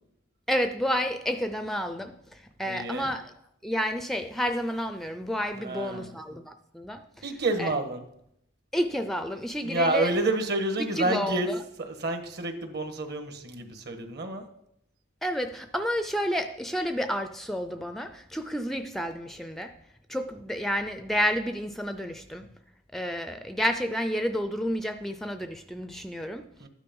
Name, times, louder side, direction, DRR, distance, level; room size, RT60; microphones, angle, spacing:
voice 1, 0.5-3.3 3.6-7.0 7.6-7.7 8.7-10.1 11.0-11.6 15.2-19.7 20.1-22.5 22.9-26.5, equal, ahead, 8 dB, 0.5 m, -30 dB
voice 2, 2.6-3.1 5.5-6.1 7.2-8.0 9.6-11.5 11.8-14.4 26.6-26.7, right 2 dB, 55° right, 7 dB, 1.5 m, -29 dB
12.5 x 9.9 x 5.4 m, 0.77 s
head